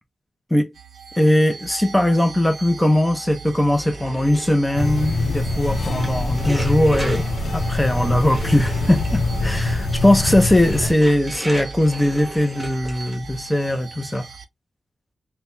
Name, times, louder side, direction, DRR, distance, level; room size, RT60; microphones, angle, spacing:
sound 1, 0.7-14.4, right 6 dB, 75° right, 0.5 m, -38 dB
voice 1, 1.2-7.3 7.5-14.3, left 1 dB, 5° left, 0.6 m, -19 dB
sound 2, 3.7-13.4, right 1 dB, 15° right, 1.1 m, -36 dB
sound 3, 4.8-10.9, left 2 dB, 75° left, 0.7 m, -24 dB
3.4 x 2.1 x 2.7 m
wide cardioid pair, 155°, 0 cm